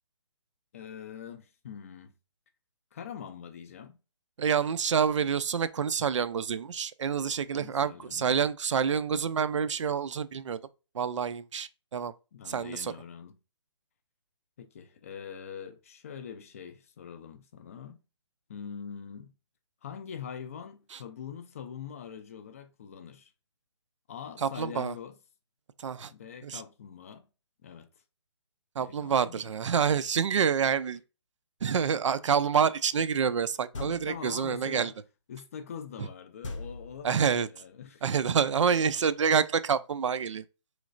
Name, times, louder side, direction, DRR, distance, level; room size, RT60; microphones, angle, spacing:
voice 1, 0.7-2.1 2.9-4.0 7.6-8.5 12.3-13.4 14.6-18.0 18.5-19.3 19.8-23.3 24.1-25.2 26.1-27.3 27.6-27.9 28.8-29.5 33.7-34.9 35.3-38.1 38.7-39.0, left 7 dB, 30° left, 0.3 m, -43 dB
voice 2, 4.4-10.6 10.9-12.1 12.5-12.9 24.4-24.9 25.8-26.1 26.4-26.6 28.8-31.0 31.6-34.9 36.0-36.1 37.0-37.5 38.0-40.4, right 7 dB, 75° right, 0.4 m, -27 dB
sound 1, 33.7-34.4 36.4-37.4, left 2 dB, 90° left, 0.7 m, -41 dB
3.2 x 3.0 x 2.5 m
hypercardioid pair, 155°, 16 cm